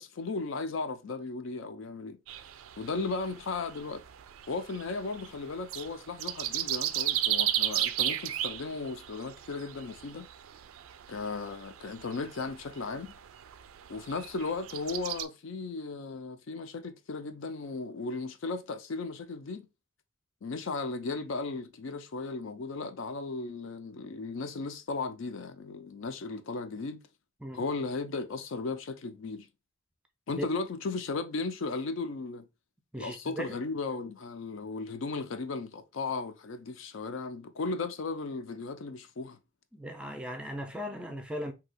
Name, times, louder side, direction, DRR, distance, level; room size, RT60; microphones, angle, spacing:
voice 1, 0.0-2.2 2.8-4.0 4.5-10.3 11.1-13.1 13.9-19.7 20.4-27.0 27.5-29.5 30.3-32.5 33.0-39.4, left 3 dB, 65° left, 0.4 m, -36 dB
sound 1, 2.3-15.3, right 12 dB, 80° right, 0.3 m, -35 dB
voice 2, 32.9-33.6 39.7-41.5, equal, 5° right, 0.4 m, -37 dB
2.7 x 2.2 x 4.0 m
head